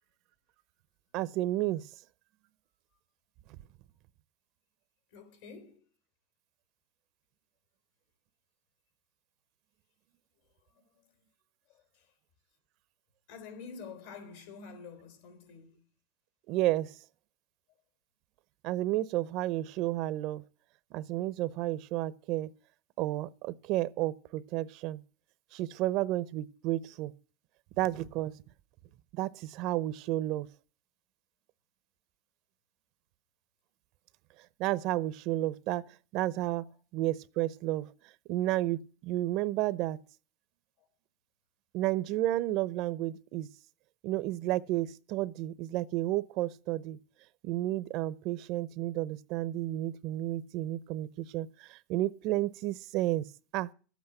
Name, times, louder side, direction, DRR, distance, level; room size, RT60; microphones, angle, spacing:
voice 1, 1.1-1.9 16.5-17.0 18.6-20.4 20.9-22.5 23.0-25.0 25.5-27.1 27.8-28.4 29.2-30.5 34.6-35.8 36.1-36.7 36.9-37.9 38.3-40.0 41.7-43.5 44.0-47.0 47.4-53.3 53.5-53.7, right 15 dB, 55° right, 0.7 m, -31 dB
voice 2, 5.1-5.9 10.4-11.2 11.7-12.1 13.3-15.8 36.6-36.7 40.8-40.9, left 5 dB, 75° left, 3.8 m, -49 dB
12.5 x 8.3 x 7.9 m
supercardioid pair, 140°, 0 cm